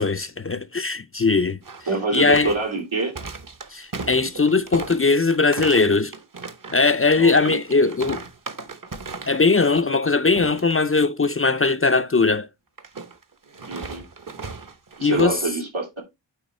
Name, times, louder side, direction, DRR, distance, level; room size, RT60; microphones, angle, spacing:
voice 1, 0.0-1.6 2.1-2.5 3.7-6.1 6.7-8.2 9.3-12.5 15.0-15.4, left 4 dB, 30° left, 0.4 m, -20 dB
sound 1, 1.6-9.5 9.8-10.0 10.4-10.7 12.8-15.4, right 4 dB, 45° right, 0.9 m, -36 dB
voice 2, 1.9-3.1 7.2-7.6 13.7-14.0 15.0-16.0, right 3 dB, 85° right, 2.7 m, -26 dB
9.3 x 3.3 x 4.2 m
wide cardioid pair, 60°, 47 cm